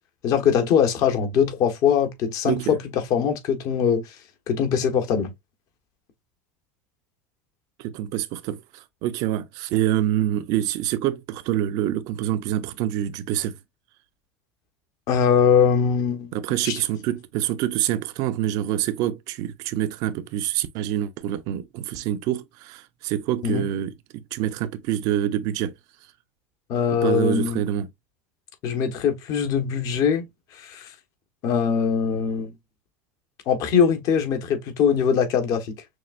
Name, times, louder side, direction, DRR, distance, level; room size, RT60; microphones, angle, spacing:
voice 1, 0.2-2.8 3.1-4.1 4.5-5.3 15.1-16.3 16.6-16.8 23.4-23.6 26.7-27.6 28.6-30.3 30.5-30.9 31.4-32.5 33.5-35.7, left 7 dB, 55° left, 1.3 m, -22 dB
voice 2, 2.4-2.8 7.8-13.6 16.3-25.7 27.0-27.9, right 12 dB, 60° right, 0.7 m, -26 dB
6.2 x 2.4 x 2.5 m
supercardioid pair, 100°, 7 cm